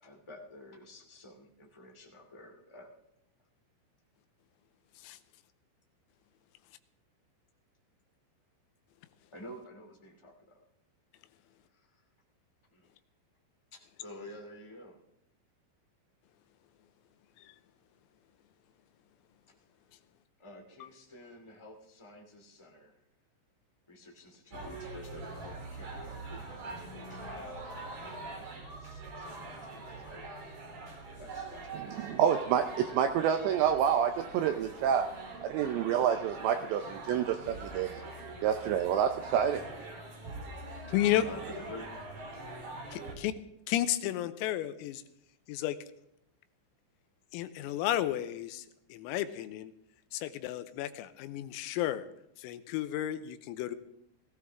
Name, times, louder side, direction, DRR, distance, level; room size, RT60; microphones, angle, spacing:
voice 1, 0.0-2.9 9.3-10.3 13.7-14.9 20.4-22.9 23.9-29.4 29.8-30.2 31.2-31.9 41.2-41.4 41.7-41.9 42.5-42.6 43.0-43.1, left 1 dB, 20° left, 0 dB, 0.6 m, -50 dB
sound 1, 24.5-43.2, right 2 dB, 40° right, 4.4 m, -44 dB
voice 2, 31.7-35.1 35.4-38.0 38.4-39.6, right 8 dB, 80° right, 6 dB, 2.6 m, -28 dB
voice 3, 40.9-41.3 42.9-43.3 43.7-45.0 45.5-45.8 47.3-49.7 50.1-52.1 52.4-53.8, left 12 dB, 90° left, 12 dB, 3.6 m, -32 dB
19.5 x 16.5 x 3.7 m, 0.79 s
omnidirectional pair, 6.0 m